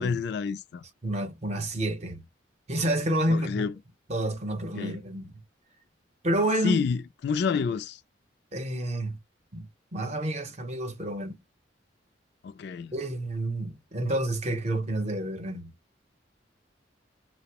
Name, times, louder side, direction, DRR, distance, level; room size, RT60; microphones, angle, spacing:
voice 1, 0.0-0.8 3.3-3.7 4.8-5.0 6.6-8.0 12.4-12.9, left 5 dB, 60° left, 0.3 m, -29 dB
voice 2, 1.0-2.3 2.7-3.7 4.1-5.3 6.2-6.8 8.5-9.2 9.5-11.4 12.9-15.7, right 1 dB, 35° right, 0.7 m, -29 dB
2.6 x 2.0 x 2.8 m
head